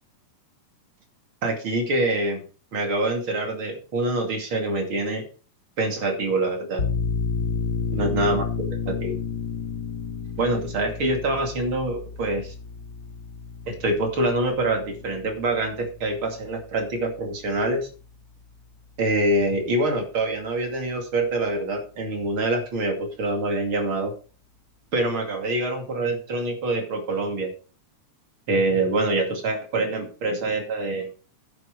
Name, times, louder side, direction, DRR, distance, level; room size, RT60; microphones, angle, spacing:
voice 1, 1.4-2.4 2.7-5.3 5.8-6.8 7.9-8.4 8.8-9.2 10.4-12.5 13.7-17.9 19.0-24.1 24.9-27.5 28.5-31.1, right 2 dB, 45° right, 4 dB, 3.1 m, -25 dB
sound 1, 6.8-18.1, left 5 dB, 35° left, 2.1 m, -32 dB
10.5 x 10.5 x 4.8 m, 0.38 s
omnidirectional pair, 3.5 m